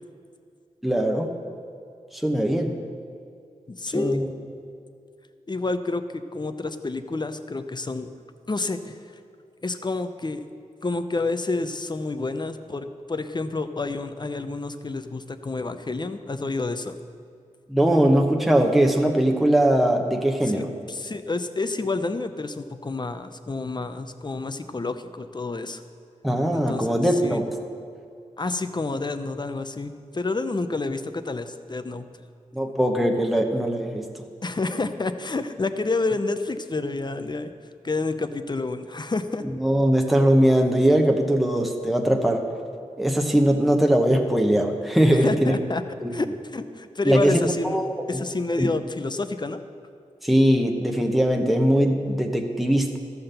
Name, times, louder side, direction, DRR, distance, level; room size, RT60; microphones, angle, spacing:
voice 1, 0.8-1.3 2.1-2.8 3.9-4.3 17.7-20.7 26.2-27.4 32.5-34.1 39.6-42.4 43.0-45.6 46.0-46.2 47.0-47.8 48.1-48.2 48.6-48.7 50.2-53.0, right 1 dB, ahead, 3 dB, 1.0 m, -21 dB
voice 2, 3.7-4.2 5.5-8.1 8.5-9.0 9.6-10.4 10.8-17.0 20.4-25.8 26.5-27.4 28.4-32.1 34.4-37.5 37.8-39.4 45.1-45.8 46.1-46.3 46.5-47.8 48.1-49.6, left 3 dB, 35° left, 9 dB, 0.6 m, -29 dB
13.5 x 5.8 x 6.8 m, 2.4 s
cardioid pair, 60°, 13 cm